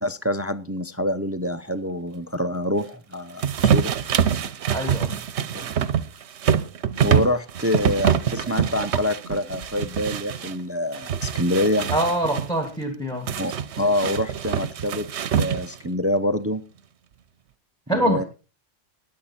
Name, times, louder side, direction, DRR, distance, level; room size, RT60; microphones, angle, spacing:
voice 1, 0.0-3.9 5.5-5.7 7.0-11.9 13.4-15.1 15.4-16.6 17.9-18.2, left 1 dB, 20° right, 11 dB, 0.4 m, -26 dB
sound 1, 3.4-10.5 10.9-12.5 13.3-15.9, right 8 dB, 65° right, 1.0 m, -25 dB
voice 2, 4.7-5.2 11.9-13.3 17.9-18.3, right 1 dB, 5° left, 5 dB, 1.9 m, -24 dB
20.0 x 7.4 x 4.3 m, 0.33 s
omnidirectional pair, 1.3 m